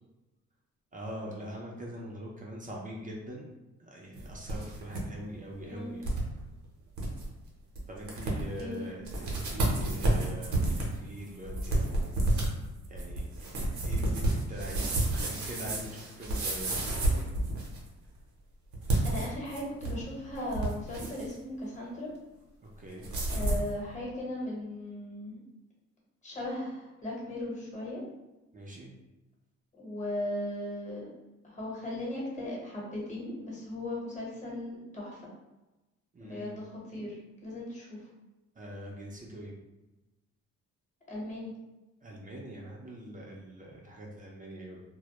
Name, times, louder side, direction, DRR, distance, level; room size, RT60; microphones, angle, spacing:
voice 1, 0.9-3.5 3.8-6.1 7.9-12.2 12.9-16.8 22.8-23.1 28.5-28.9 36.1-36.6 38.6-39.5 42.0-44.8, equal, 25° right, -3 dB, 0.5 m, -43 dB
sound 1, 4.2-5.0 5.3-5.4 6.0-6.2 6.6-6.7 7.0-7.3 7.8-7.9 8.1-8.6 9.0-17.9 18.7-20.0 20.3-21.3 23.0-23.7, right 2 dB, 75° right, 0.7 m, -30 dB
voice 2, 5.6-6.0 8.6-8.9 19.0-22.1 23.3-25.4 26.2-28.0 29.8-31.1 31.4-35.3 36.2-38.1 41.1-41.5, left 1 dB, 25° left, -4 dB, 1.0 m, -37 dB
2.1 x 2.0 x 2.9 m, 1.1 s
cardioid pair, 90°, 30 cm